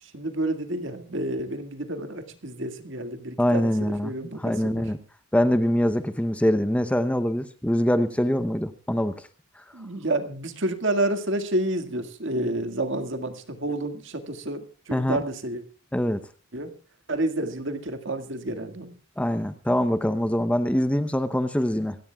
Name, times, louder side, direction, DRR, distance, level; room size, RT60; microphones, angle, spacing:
voice 1, 0.0-4.8 9.7-15.6 16.5-16.7 17.1-18.9, right 1 dB, 60° right, 8 dB, 1.9 m, -29 dB
voice 2, 3.4-5.0 5.3-9.3 9.6-9.7 14.9-15.2 15.9-16.3 19.2-22.0, equal, 5° left, 11 dB, 0.7 m, -24 dB
26.0 x 16.5 x 2.3 m, 0.36 s
head